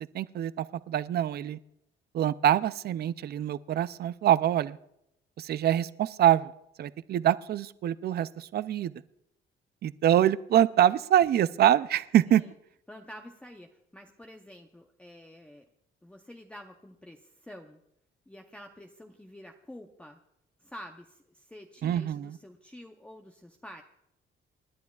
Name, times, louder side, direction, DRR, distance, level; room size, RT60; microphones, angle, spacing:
voice 1, 0.1-1.6 2.1-4.8 5.4-6.5 6.8-8.9 9.8-12.4 21.8-22.4, right 11 dB, 50° right, 16 dB, 0.4 m, -25 dB
voice 2, 12.9-15.7 16.0-17.8 18.3-20.2 20.6-23.8, equal, 5° left, 2 dB, 0.7 m, -48 dB
29.0 x 10.5 x 2.4 m, 0.81 s
cardioid pair, 130°, 21 cm